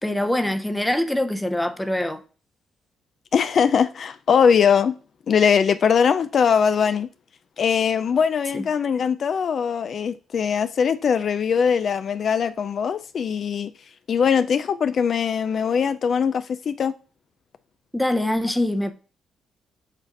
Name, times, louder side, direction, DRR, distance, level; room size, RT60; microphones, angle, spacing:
voice 1, 0.0-2.2 8.5-8.7 17.9-18.9, left 1 dB, 5° left, 0.7 m, -24 dB
voice 2, 3.3-4.9 5.3-7.1 7.6-13.7 14.1-16.9, left 7 dB, 55° left, 0.3 m, -21 dB
7.2 x 2.5 x 5.3 m
cardioid pair, 90°, 0 cm